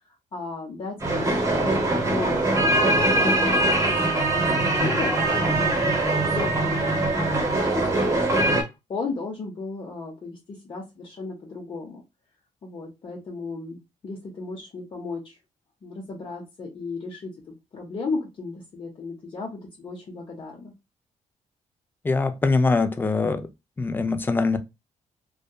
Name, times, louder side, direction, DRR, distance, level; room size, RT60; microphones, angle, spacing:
voice 1, 0.3-7.7 8.0-8.4 8.9-12.0 12.6-13.8 14.0-15.4 15.8-20.7, left 3 dB, 40° left, 0.7 m, -35 dB
sound 1, 1.0-8.6, right 2 dB, 25° right, 0.8 m, -22 dB
voice 2, 22.0-23.5 23.8-24.6, left 3 dB, 15° left, 0.3 m, -23 dB
2.7 x 2.2 x 2.2 m
cardioid pair, 135°, 13 cm